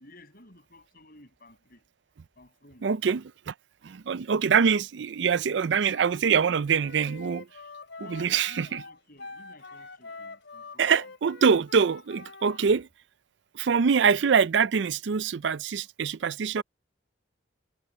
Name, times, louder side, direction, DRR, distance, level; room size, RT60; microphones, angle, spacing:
voice 1, 0.0-1.8 2.4-2.9 8.0-11.1, left 1 dB, 55° left, 7.1 m, -54 dB
voice 2, 2.8-3.5 3.8-7.5 8.1-8.8 10.8-12.9 13.5-16.6, right 6 dB, 75° right, 0.5 m, -24 dB
Wind instrument woodwind instrument, 5.8-12.6, left 3 dB, 80° left, 3.3 m, -45 dB
head